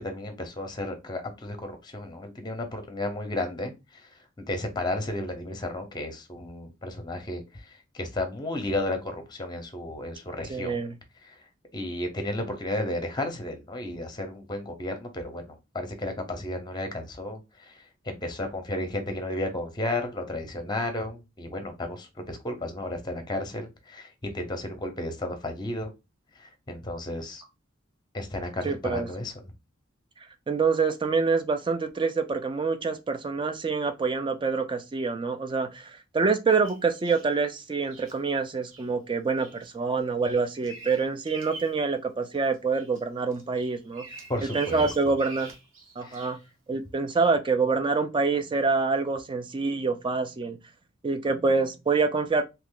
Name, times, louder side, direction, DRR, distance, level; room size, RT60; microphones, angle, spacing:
voice 1, 0.0-10.8 11.2-11.4 11.7-25.9 26.4-27.4 28.1-29.5 44.3-44.9 46.0-46.3, left 1 dB, 20° left, 0.7 m, -33 dB
voice 2, 10.5-10.9 28.6-29.1 30.5-44.1 44.5-45.5 46.0-46.4 46.7-50.6 51.0-52.4, right 4 dB, 25° right, 0.4 m, -26 dB
Bird vocalization bird call bird song, 36.6-37.3 37.9-38.2 38.7-38.9 39.4-39.7 40.0-41.8 42.2-43.0 43.3-46.5 47.2-47.3, right 2 dB, 75° right, 0.9 m, -45 dB
2.8 x 2.5 x 3.7 m
head